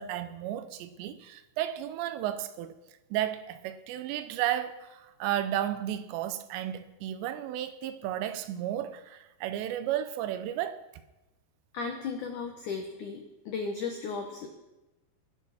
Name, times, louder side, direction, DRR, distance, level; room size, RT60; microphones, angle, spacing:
voice 1, 0.0-2.8 3.1-10.8, right 11 dB, 80° right, 2.8 m, -33 dB
voice 2, 11.7-14.5, left 5 dB, 90° left, 1.7 m, -35 dB
20.5 x 7.0 x 5.9 m
omnidirectional pair, 5.3 m